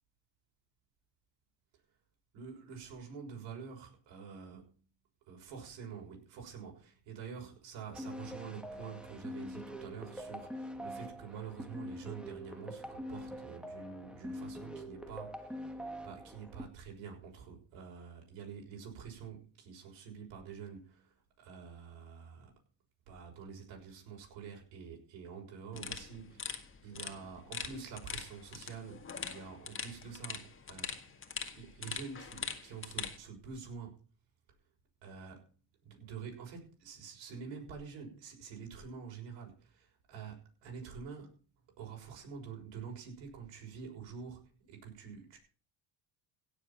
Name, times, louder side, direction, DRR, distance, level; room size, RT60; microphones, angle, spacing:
voice 1, 2.3-4.7 5.3-22.5 23.1-31.2 31.5-34.0 35.0-35.4 35.8-41.4 41.8-45.4, right 6 dB, 75° right, 6.5 m, -47 dB
sound 1, 7.9-16.7, equal, ahead, 1.7 m, -44 dB
sound 2, 25.7-33.2, left 6 dB, 30° left, 1.9 m, -43 dB
17.0 x 7.6 x 5.7 m
supercardioid pair, 95°, 44 cm